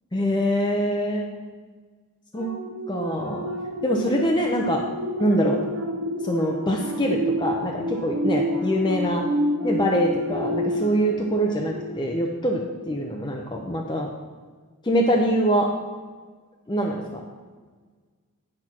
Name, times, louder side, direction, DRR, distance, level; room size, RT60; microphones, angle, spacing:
voice 1, 0.1-1.2 2.3-2.5 2.9-3.5 3.8-4.8 5.2-5.6 6.2-9.2 9.6-14.1 14.8-15.7 16.7-17.0, equal, 20° left, 0 dB, 0.7 m, -24 dB
sound 1, 2.4-12.2 12.7-12.9, equal, 75° right, 1.4 m, -29 dB
10.0 x 4.5 x 5.9 m, 1.5 s
head